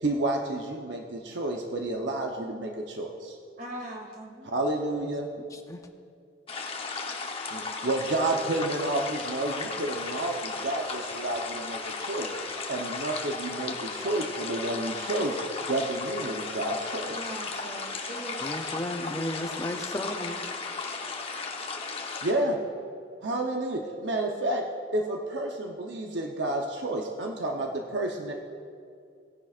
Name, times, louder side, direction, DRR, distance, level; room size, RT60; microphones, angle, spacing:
voice 1, 0.0-3.4 4.4-5.2 7.5-12.3 12.7-15.4 15.6-17.2 22.2-22.6 23.2-24.6 24.9-28.3, right 2 dB, 75° right, 2 dB, 0.8 m, -30 dB
voice 2, 3.6-4.5 17.1-18.6, right 1 dB, 55° right, -1 dB, 2.4 m, -40 dB
sound 1, 6.5-22.3, left 4 dB, 35° left, 0.9 m, -35 dB
voice 3, 18.4-20.4, left 1 dB, 20° left, 5 dB, 0.6 m, -34 dB
17.5 x 10.5 x 2.4 m, 2.3 s
head